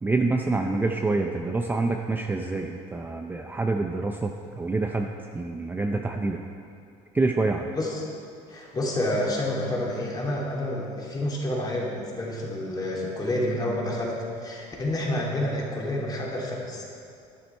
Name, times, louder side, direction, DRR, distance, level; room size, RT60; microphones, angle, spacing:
voice 1, 0.0-5.1 5.3-6.4 7.1-7.7, right 3 dB, 15° right, 3 dB, 0.5 m, -26 dB
voice 2, 7.7-8.1 8.5-17.0, left 1 dB, 25° left, -3 dB, 2.8 m, -29 dB
11.5 x 9.8 x 4.5 m, 2.4 s
cardioid pair, 110°, 15 cm